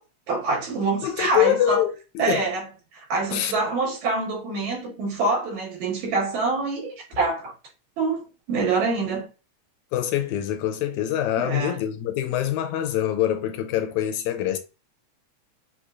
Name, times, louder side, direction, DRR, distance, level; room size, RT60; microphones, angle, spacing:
voice 1, 0.3-1.8 2.2-2.7 2.9-7.5 8.0-9.3 11.4-11.8, right 3 dB, 70° right, 2.9 m, -26 dB
voice 2, 1.0-2.5 3.3-3.5 9.9-14.6, left 11 dB, 80° left, 1.9 m, -24 dB
6.2 x 2.9 x 2.6 m
omnidirectional pair, 3.5 m